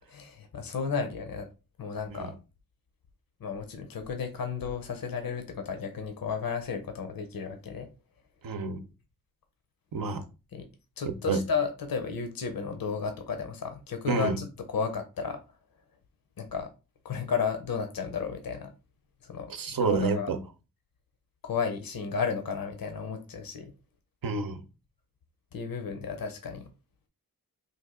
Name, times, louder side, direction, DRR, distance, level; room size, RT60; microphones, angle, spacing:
voice 1, 0.1-1.5 1.8-2.3 3.4-7.9 10.5-10.7 11.0-15.4 16.4-16.7 17.0-18.7 19.2-20.3 21.4-23.7 25.5-26.7, left 6 dB, 70° left, 0.7 m, -33 dB
voice 2, 8.4-8.8 9.9-10.3 11.1-11.4 14.1-14.4 19.5-20.4 24.2-24.6, right 4 dB, 70° right, 0.7 m, -29 dB
3.3 x 2.3 x 3.5 m
cardioid pair, 45°, 36 cm